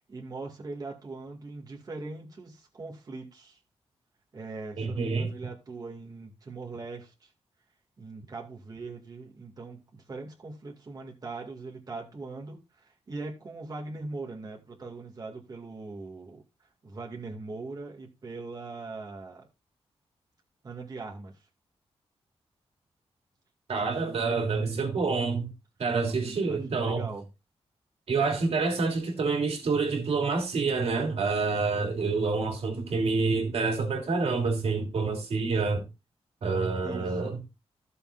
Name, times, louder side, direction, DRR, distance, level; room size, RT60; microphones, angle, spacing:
voice 1, 0.1-3.6 4.3-7.3 8.0-19.5 20.6-21.5 23.8-25.0 26.1-27.3 36.8-37.3, right 3 dB, 35° right, 2.2 m, -41 dB
voice 2, 4.8-5.3 23.7-25.5 25.8-27.1 28.1-35.8 36.4-37.4, right 4 dB, 70° right, 3.0 m, -27 dB
15.5 x 6.9 x 2.6 m
wide cardioid pair, 165°, 11 cm